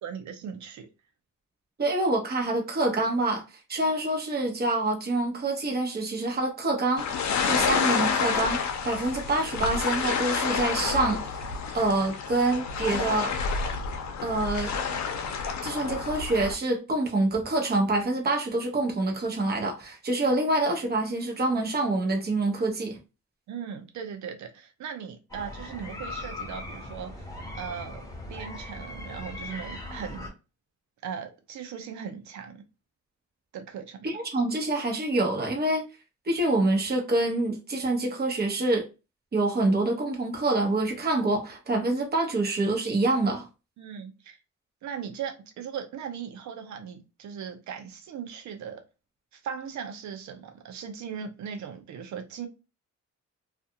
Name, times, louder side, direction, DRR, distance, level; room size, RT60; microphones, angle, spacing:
voice 1, 0.0-0.9 23.5-28.0 28.3-30.3 31.0-32.6 33.5-34.1 43.8-44.4 44.8-48.8 49.3-52.5, right 7 dB, 70° right, 0.8 m, -38 dB
voice 2, 1.8-3.4 3.7-11.4 11.7-13.3 14.2-14.7 15.6-23.0 34.0-35.8 36.3-38.8 39.3-43.5, right 2 dB, 30° right, 1.0 m, -26 dB
sound 1, 7.0-16.5, left 6 dB, 65° left, 0.6 m, -29 dB
sound 2, 25.3-30.3, left 1 dB, 10° left, 1.1 m, -39 dB
2.5 x 2.4 x 2.7 m
cardioid pair, 90°, 30 cm